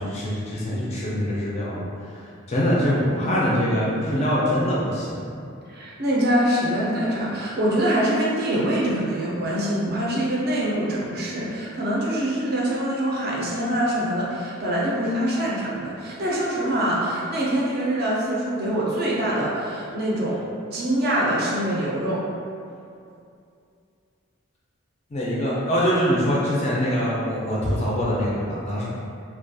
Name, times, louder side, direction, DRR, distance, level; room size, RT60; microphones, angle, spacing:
voice 1, 0.0-1.9 2.5-5.5 25.1-28.9, equal, 30° left, -6 dB, 0.4 m, -24 dB
voice 2, 5.7-20.4 20.7-22.3, right 1 dB, 45° right, -5 dB, 0.4 m, -24 dB
2.3 x 2.3 x 2.6 m, 2.5 s
head